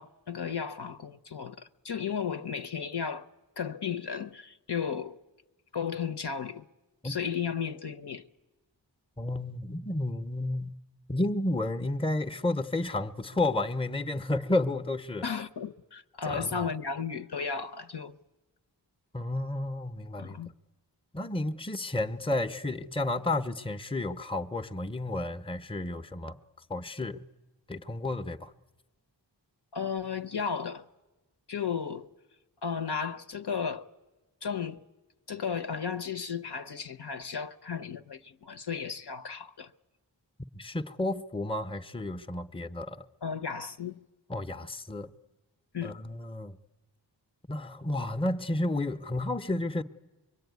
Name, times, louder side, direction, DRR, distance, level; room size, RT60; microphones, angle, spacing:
voice 1, 0.0-3.3 3.6-5.2 5.7-6.7 7.0-8.2 15.2-18.2 20.2-20.5 29.7-30.9 31.5-32.1 32.6-33.9 34.4-34.8 35.3-39.7 43.2-44.0 45.7-46.0, left 6 dB, 60° left, 0.9 m, -34 dB
voice 2, 9.2-10.8 11.1-15.2 16.3-16.7 19.1-20.4 21.1-26.4 26.7-27.2 27.7-28.5 40.5-43.0 44.3-45.1 45.8-46.6 47.5-49.8, left 2 dB, 10° left, 0.8 m, -31 dB
25.0 x 22.5 x 9.4 m
wide cardioid pair, 45°, 45 cm